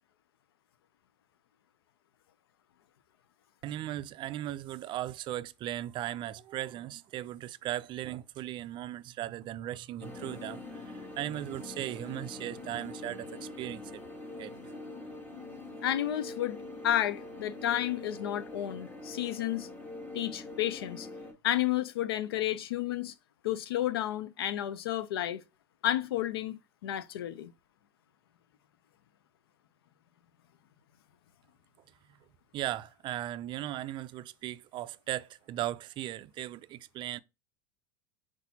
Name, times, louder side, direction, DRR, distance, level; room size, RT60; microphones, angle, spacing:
voice 1, 3.6-14.0 14.4-14.5 32.5-37.2, right 13 dB, 40° right, 0.4 m, -37 dB
sound 1, 10.0-21.3, left 2 dB, 10° left, 1.3 m, -44 dB
voice 2, 15.8-16.6 16.8-19.7 20.1-21.1 21.4-23.1 23.4-25.4 25.8-27.5, left 12 dB, 90° left, 0.5 m, -31 dB
4.7 x 4.1 x 2.7 m
supercardioid pair, 110°, 12 cm